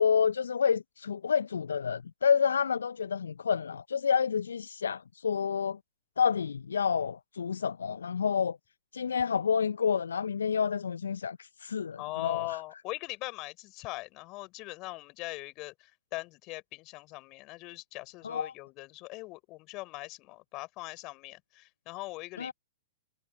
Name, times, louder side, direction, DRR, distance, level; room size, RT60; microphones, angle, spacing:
voice 1, 0.0-5.8 6.2-8.6 8.9-12.4 18.2-18.5 22.4-22.5, left 6 dB, 75° left, 0.5 m, -29 dB
voice 2, 12.0-22.5, left 22 dB, 40° left, 4.8 m, -41 dB
figure-of-eight pair, 105°, 0 cm